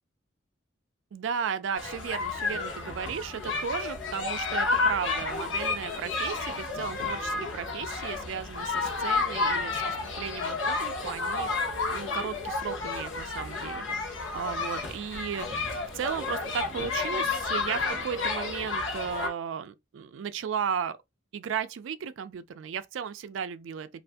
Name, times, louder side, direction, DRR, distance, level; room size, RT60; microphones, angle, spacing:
voice 1, 1.1-9.8 10.2-11.5 11.9-13.9 14.3-15.5 15.9-21.0 21.3-24.0, right 7 dB, 80° right, 0.3 m, -35 dB
sound 1, 1.8-19.3, left 3 dB, 80° left, 0.8 m, -31 dB
2.6 x 2.4 x 3.4 m
head